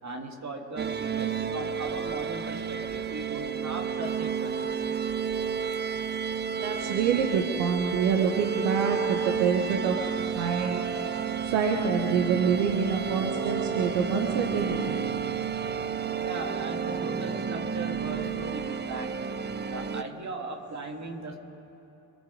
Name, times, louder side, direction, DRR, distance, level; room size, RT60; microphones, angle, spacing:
voice 1, 0.0-4.8 16.2-19.4 19.7-21.4, right 2 dB, 40° right, 2 dB, 2.9 m, -38 dB
sound 1, 0.8-20.0, right 7 dB, 25° right, 0.7 m, -31 dB
voice 2, 6.6-10.0 10.4-10.9 11.5-14.9, right 6 dB, 75° right, 3 dB, 1.3 m, -26 dB
26.0 x 8.8 x 5.0 m, 3.0 s
hypercardioid pair, 45°, 44 cm